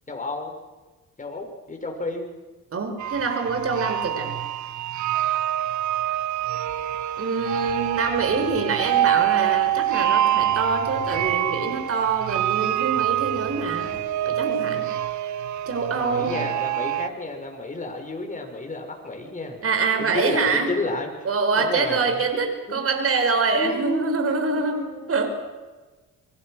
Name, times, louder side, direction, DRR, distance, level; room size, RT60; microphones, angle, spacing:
voice 1, 0.1-0.5 1.2-2.3 15.9-19.6 20.0-21.1 21.6-22.3 22.7-23.1 23.5-25.3, left 2 dB, 25° left, 3 dB, 5.6 m, -31 dB
voice 2, 2.7-4.3 7.2-13.9 14.3-14.9 15.7-16.4 19.6-20.7 21.3-24.8 25.1-25.3, right 4 dB, 50° right, 6 dB, 5.3 m, -25 dB
sound 1, 3.0-17.1, right 12 dB, 70° right, 0.9 m, -26 dB
sound 2, 7.6-14.6, left 5 dB, 65° left, 6.3 m, -45 dB
27.0 x 22.5 x 6.5 m, 1.2 s
cardioid pair, 90°, 30 cm